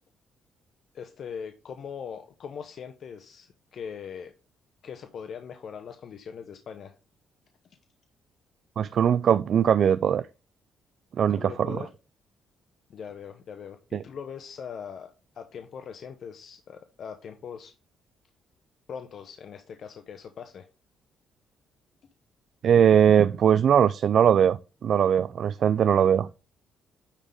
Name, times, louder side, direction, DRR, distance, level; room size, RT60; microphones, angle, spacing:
voice 1, 0.9-4.3 4.8-6.9 11.2-11.9 12.9-15.1 15.3-17.7 18.9-20.7, left 7 dB, 60° left, 0.9 m, -41 dB
voice 2, 8.8-10.2 11.2-11.8 13.9-14.0 22.6-26.3, right 8 dB, 60° right, 0.3 m, -20 dB
9.8 x 3.8 x 3.5 m
cardioid pair, 90°, 0 cm